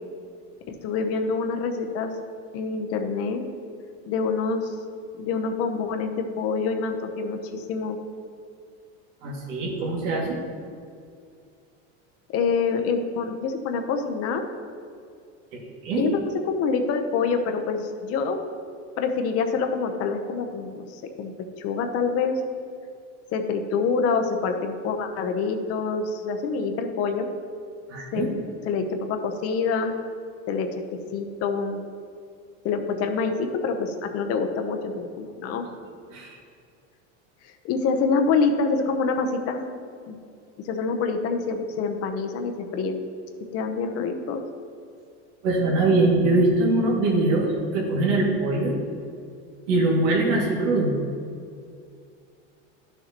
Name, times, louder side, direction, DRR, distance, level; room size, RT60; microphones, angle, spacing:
voice 1, 0.7-2.1 2.5-3.4 4.1-4.8 5.1-8.0 12.3-14.4 16.0-18.4 19.0-22.4 23.3-27.3 28.1-28.3 28.6-30.0 30.5-31.8 32.6-35.7 37.4-39.6 40.1-40.2 40.6-43.0 43.5-44.4, left 5 dB, 40° left, 5 dB, 0.8 m, -26 dB
voice 2, 9.2-10.4 15.5-16.1 27.9-28.3 36.1-36.4 45.4-48.7 49.7-50.9, right 2 dB, 80° right, -2 dB, 2.2 m, -22 dB
12.0 x 6.7 x 3.0 m, 2.4 s
supercardioid pair, 140°, 36 cm